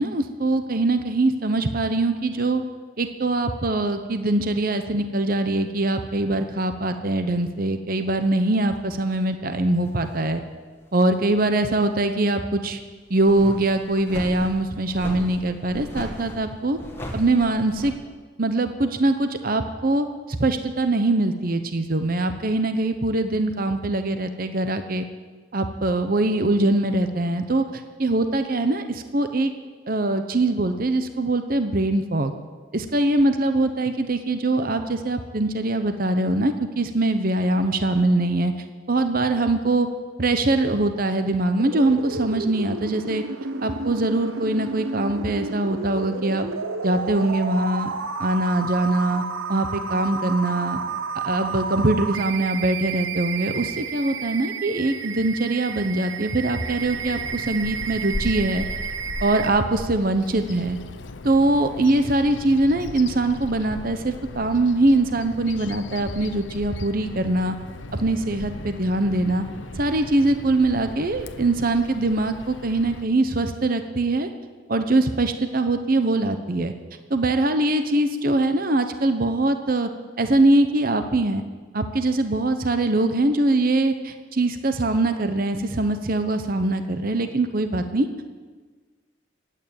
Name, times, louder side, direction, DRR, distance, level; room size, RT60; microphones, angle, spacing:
voice 1, 0.0-2.6 3.0-10.4 10.9-12.8 13.1-16.8 17.1-17.9 18.4-25.1 25.5-27.6 28.0-29.5 29.9-32.3 32.7-38.5 38.9-39.9 40.2-43.2 43.6-46.5 46.8-47.9 48.2-49.2 49.5-50.8 51.1-58.7 59.2-60.8 61.2-67.6 67.9-69.4 69.7-74.3 74.7-76.7 77.1-79.9 80.2-81.4 81.7-88.1, right 2 dB, 45° right, 8 dB, 0.9 m, -22 dB
sound 1, 8.7-8.9 9.7-10.3 10.8-10.9 13.1-17.9, equal, 10° left, 2.0 m, -37 dB
sound 2, 41.6-59.5, right 5 dB, 85° right, 0.8 m, -31 dB
Bird vocalization bird call bird song, 56.6-73.1, left 2 dB, 70° left, 0.8 m, -37 dB
16.0 x 9.3 x 9.2 m, 1.4 s
head